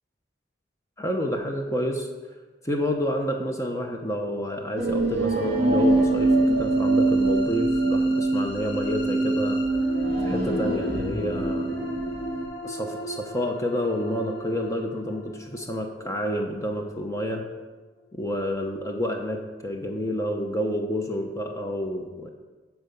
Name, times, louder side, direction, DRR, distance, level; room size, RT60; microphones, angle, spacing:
voice 1, 1.0-2.1 2.6-9.6 10.2-11.7 12.6-17.4 18.1-22.3, equal, 15° left, 2 dB, 0.8 m, -29 dB
sound 1, 4.8-12.4, right 2 dB, 35° right, 1.6 m, -24 dB
sound 2, 5.8-17.8, left 1 dB, 60° left, 2.7 m, -37 dB
10.5 x 4.7 x 6.9 m, 1.3 s
head